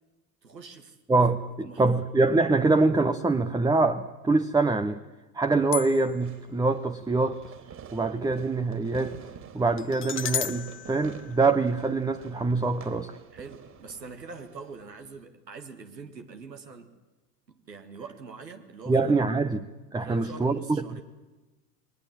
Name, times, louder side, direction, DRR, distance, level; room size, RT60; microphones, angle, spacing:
voice 1, 0.4-1.0 1.6-2.0 13.3-16.9 17.5-19.1 20.0-21.0, right 4 dB, 85° right, 6 dB, 2.2 m, -44 dB
voice 2, 1.1-5.0 5.3-7.4 7.9-9.2 9.5-13.2 18.9-19.6 19.9-21.0, right 3 dB, 10° right, 9 dB, 0.9 m, -24 dB
sound 1, 5.7-6.4 9.8-12.0, left 9 dB, 25° left, 1.1 m, -35 dB
Fireworks, 6.2-15.2, right 7 dB, 35° right, 3.8 m, -48 dB
29.0 x 21.5 x 7.6 m, 1.1 s
figure-of-eight pair, 80°, 48 cm